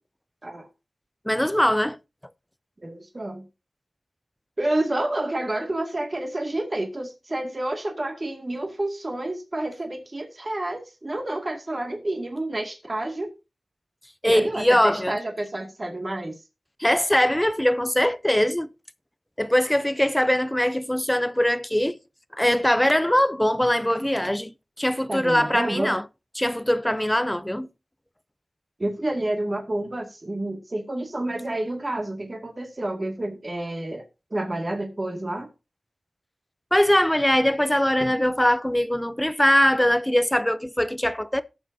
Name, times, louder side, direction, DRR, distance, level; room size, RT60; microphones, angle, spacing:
voice 1, 1.3-2.0 14.2-15.2 16.8-18.7 19.4-22.0 22.4-26.0 26.4-27.7 36.7-41.4, left 1 dB, 10° left, 0.6 m, -22 dB
voice 2, 2.8-3.4 4.6-13.3 14.2-16.3 25.1-25.9 28.8-34.0 34.3-35.5, right 1 dB, 35° right, 2.1 m, -29 dB
17.5 x 7.1 x 2.7 m
wide cardioid pair, 80°, 0 cm